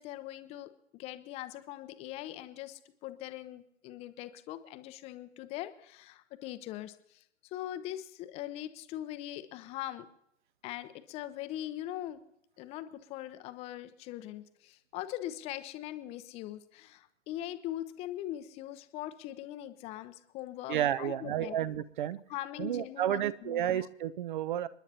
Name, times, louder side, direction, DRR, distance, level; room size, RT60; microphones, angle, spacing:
voice 1, 0.0-10.1 10.6-12.2 12.6-21.6 22.3-23.9, left 13 dB, 15° left, 11 dB, 0.6 m, -41 dB
voice 2, 20.7-22.2 22.6-24.7, right 11 dB, 40° right, 18 dB, 0.6 m, -31 dB
29.0 x 11.0 x 2.8 m, 0.77 s
figure-of-eight pair, 115°, 38 cm